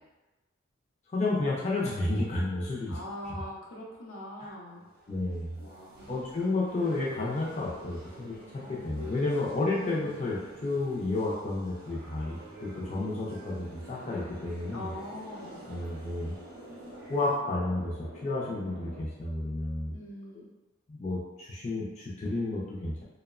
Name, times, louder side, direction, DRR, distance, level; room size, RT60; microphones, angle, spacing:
voice 1, 1.1-3.0 3.3-3.4 4.4-4.5 5.1-5.6 6.1-14.9 15.7-16.3 17.1-19.9 20.3-20.4 20.9-23.0, left 2 dB, 35° left, -6 dB, 0.4 m, -31 dB
voice 2, 2.9-4.8 5.6-6.2 8.6-9.2 9.8-10.1 14.7-15.6 19.9-20.5, left 1 dB, 85° left, -3 dB, 0.6 m, -43 dB
sound 1, 4.6-17.4, right 1 dB, 50° right, 0.6 m, -49 dB
sound 2, 12.7-19.0, right 1 dB, 55° left, 0.8 m, -48 dB
2.8 x 2.0 x 2.3 m, 1.1 s
head